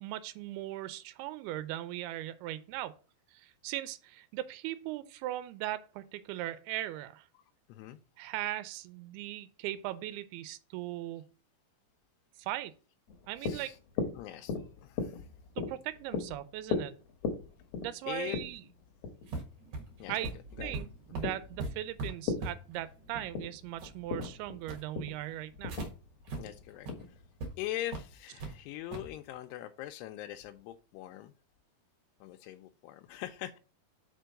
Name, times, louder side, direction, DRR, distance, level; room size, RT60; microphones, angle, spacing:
voice 1, 0.0-3.0 3.3-7.3 8.2-11.3 12.4-12.7 13.3-13.7 15.6-17.0 17.8-18.6 20.1-20.3 20.6-25.7, right 14 dB, 85° right, 2.5 m, -39 dB
voice 2, 7.7-8.0 13.4-13.8 14.2-14.6 14.8-15.3 18.1-18.4 20.0-20.2 20.6-20.8 21.1-21.3 26.4-27.2 27.6-31.3 32.2-33.6, left 14 dB, 90° left, 2.7 m, -42 dB
sound 1, 13.1-27.6, left 5 dB, 65° left, 1.7 m, -39 dB
sound 2, 19.3-25.9 26.3-26.4 26.8-26.9 27.4-27.5 27.9-28.5 28.9-29.1, right 3 dB, 55° right, 2.3 m, -41 dB
5.9 x 4.6 x 6.3 m
omnidirectional pair, 4.7 m